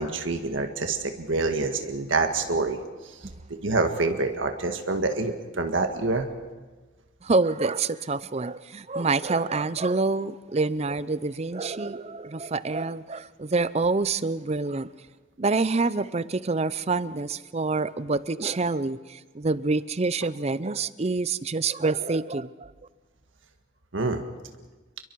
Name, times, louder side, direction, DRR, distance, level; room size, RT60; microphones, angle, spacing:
voice 1, 0.0-2.8 3.5-6.3 23.9-24.2, right 3 dB, 75° right, 1.7 m, -26 dB
voice 2, 7.2-14.9 15.4-22.7, right 3 dB, 35° right, 0.6 m, -27 dB
29.0 x 22.5 x 4.7 m
head